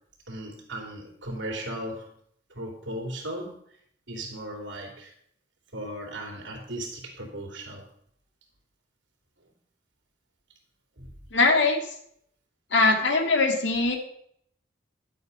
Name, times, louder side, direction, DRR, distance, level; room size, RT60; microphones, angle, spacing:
voice 1, 0.3-2.1 2.5-3.6 4.1-5.1 5.7-7.9 11.0-11.1, right 1 dB, 75° right, 1 dB, 3.4 m, -36 dB
voice 2, 11.3-11.9 12.7-14.0, left 3 dB, 75° left, 4 dB, 2.1 m, -21 dB
11.5 x 7.9 x 5.5 m, 0.68 s
head